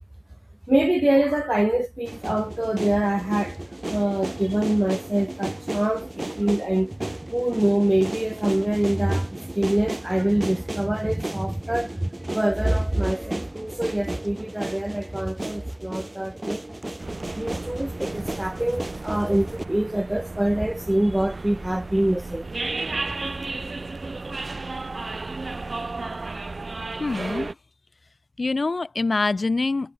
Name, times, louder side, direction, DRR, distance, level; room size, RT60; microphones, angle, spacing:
voice 1, 0.7-3.6 3.9-7.0 7.3-16.6 17.3-22.5, right 1 dB, 20° right, 0.4 m, -24 dB
sound 1, 2.1-19.7, right 1 dB, 40° right, 2.1 m, -35 dB
sound 2, 17.0-27.5, right 3 dB, 80° right, 0.6 m, -34 dB
voice 2, 27.0-27.5 28.4-29.9, left 3 dB, 80° left, 0.4 m, -25 dB
wide cardioid pair, 50°, 0 cm